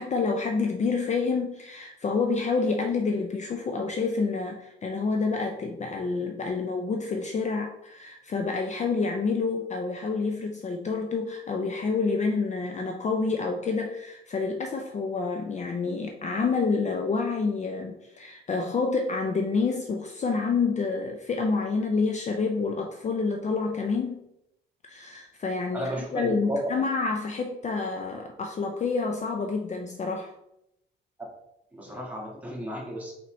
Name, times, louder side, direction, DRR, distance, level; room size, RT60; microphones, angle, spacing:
voice 1, 0.0-24.2 24.8-30.3, left 4 dB, 35° left, 3 dB, 0.5 m, -28 dB
voice 2, 25.7-26.7 31.7-33.1, right 1 dB, 10° right, -3 dB, 1.6 m, -33 dB
4.2 x 4.1 x 3.1 m, 0.83 s
cardioid pair, 90°, 20 cm